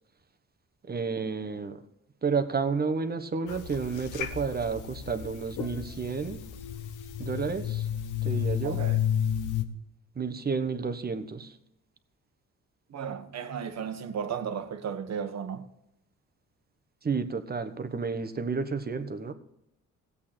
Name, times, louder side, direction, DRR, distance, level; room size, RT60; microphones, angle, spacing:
voice 1, 0.9-1.8 2.2-6.5 7.2-7.9 8.2-8.8 10.2-11.5 17.0-19.3, right 5 dB, 30° right, 1.2 m, -31 dB
sound 1, 3.5-9.6, left 9 dB, 90° left, 1.1 m, -32 dB
voice 2, 8.6-9.0 12.9-15.7, right 7 dB, 60° right, 1.4 m, -34 dB
16.0 x 8.5 x 4.4 m
cardioid pair, 90°, 30 cm